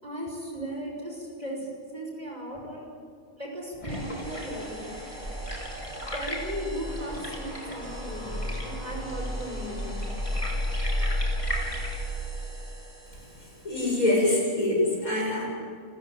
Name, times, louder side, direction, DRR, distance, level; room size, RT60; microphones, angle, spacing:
voice 1, 0.0-1.6 1.9-2.9 3.4-4.9 6.1-10.1, equal, 30° right, 0 dB, 6.1 m, -36 dB
sound 1, 3.8-12.0, equal, 20° left, 4.7 m, -32 dB
sound 2, 3.9-14.0, right 1 dB, 85° right, 7.1 m, -43 dB
voice 2, 13.4-15.5, left 1 dB, 80° left, -2 dB, 7.9 m, -25 dB
29.5 x 15.0 x 9.2 m, 2.4 s
omnidirectional pair, 1.5 m